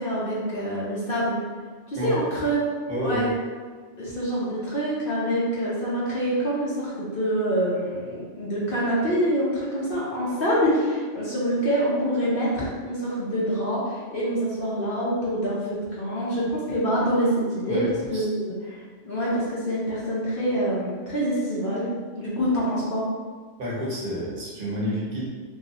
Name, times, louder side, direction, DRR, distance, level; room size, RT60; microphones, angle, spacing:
voice 1, 0.0-1.4 1.9-2.6 3.0-3.3 4.0-15.6 15.9-17.3 17.6-17.8 18.1-21.9 22.1-23.0, equal, 50° left, -7 dB, 0.8 m, -26 dB
voice 2, 2.9-3.2 17.7-17.9 18.1-18.3 23.6-25.3, equal, 50° right, -6 dB, 1.0 m, -29 dB
3.0 x 2.9 x 2.8 m, 1.5 s
omnidirectional pair, 1.3 m